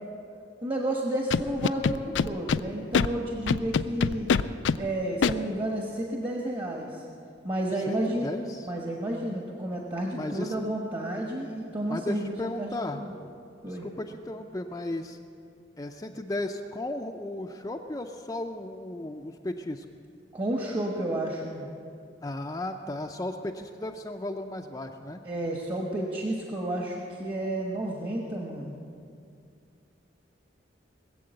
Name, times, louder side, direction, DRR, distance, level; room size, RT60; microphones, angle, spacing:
voice 1, 0.6-4.3 4.8-7.0 7.4-8.3 8.6-13.1 13.6-13.9 20.3-21.7 25.2-28.8, right 1 dB, 30° right, -1 dB, 1.3 m, -31 dB
Scratching (performance technique), 1.3-2.6 2.9-3.1 3.5-4.8 5.2-5.3, left 5 dB, 85° left, 0.4 m, -23 dB
voice 2, 7.9-8.7 10.1-10.6 11.9-13.0 13.6-15.2 15.8-19.9 22.2-25.2, left 1 dB, 20° left, 3 dB, 0.5 m, -35 dB
20.0 x 7.7 x 7.8 m, 2.4 s
head